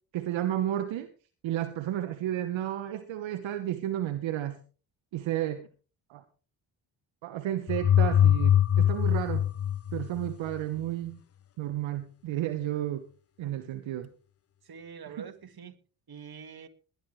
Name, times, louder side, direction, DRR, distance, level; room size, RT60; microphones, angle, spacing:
voice 1, 0.1-1.1 1.4-4.6 5.1-5.7 6.1-6.2 7.2-9.5 9.9-11.2 11.6-13.0 13.4-14.1 15.1-15.2, right 12 dB, 70° right, 1.1 m, -32 dB
sound 1, 7.7-10.6, left 10 dB, 30° left, 0.5 m, -23 dB
voice 2, 14.7-15.7 16.1-16.7, right 6 dB, 50° right, 2.1 m, -45 dB
20.0 x 11.0 x 3.2 m
hypercardioid pair, 45°, 47 cm